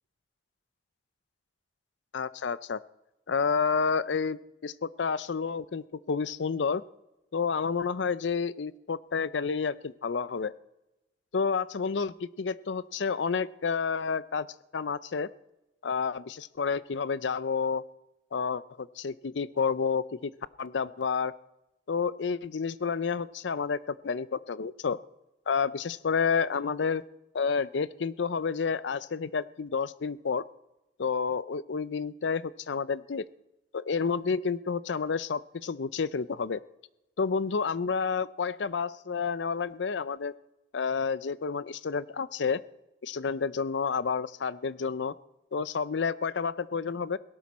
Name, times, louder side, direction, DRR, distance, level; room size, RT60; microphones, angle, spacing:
voice 1, 2.1-2.8 3.3-6.8 7.3-10.5 11.3-14.5 14.7-15.3 15.8-17.8 18.3-20.3 20.6-21.3 21.9-25.0 25.5-27.0 27.3-30.4 31.0-33.2 33.7-36.6 37.2-40.3 40.7-42.6 43.0-45.1 45.5-47.2, left 5 dB, 80° left, 17 dB, 0.5 m, -30 dB
17.5 x 17.5 x 4.2 m, 0.95 s
head